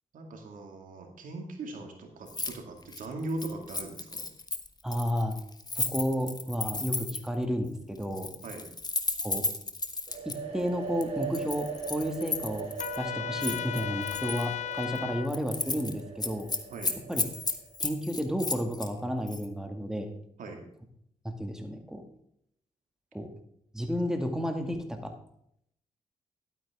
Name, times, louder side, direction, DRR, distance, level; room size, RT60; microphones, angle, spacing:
voice 1, 0.1-4.3 8.4-8.7 16.7-17.0 20.4-20.6, right 2 dB, 75° right, 3 dB, 2.3 m, -39 dB
Keys jangling, 2.3-2.5 2.8-7.3 8.0-10.4 11.0-13.0 13.4-14.5 14.8-15.0 15.3-15.9 16.2-18.9 19.3-19.5, left 3 dB, 30° left, 1.3 m, -34 dB
voice 2, 4.8-5.4 5.7-8.3 9.2-9.4 10.3-12.7 13.0-16.5 17.1-17.2 17.8-20.1 21.2-22.0 23.1-23.3 23.7-25.1, equal, 5° right, 4 dB, 2.1 m, -32 dB
sound 1, 10.1-17.7, right 5 dB, 50° right, 3.8 m, -40 dB
Trumpet, 12.8-15.3, left 11 dB, 60° left, 0.4 m, -35 dB
11.5 x 9.1 x 3.6 m, 0.71 s
supercardioid pair, 55°, 14 cm